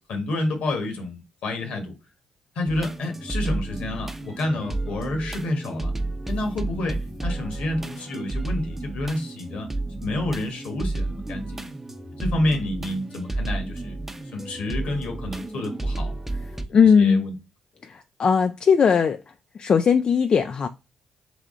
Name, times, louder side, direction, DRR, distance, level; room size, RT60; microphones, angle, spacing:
voice 1, 0.1-1.9 2.5-5.9 6.2-9.7 10.0-11.8 12.2-14.0 14.3-16.1 16.8-17.3, left 1 dB, 65° left, 1.3 m, -29 dB
sound 1, 2.7-16.7, right 2 dB, 10° right, 0.7 m, -31 dB
voice 2, 16.7-17.2 17.8-19.2 19.5-20.7, left 6 dB, 50° left, 0.3 m, -19 dB
3.5 x 3.4 x 3.8 m
hypercardioid pair, 40°, 2 cm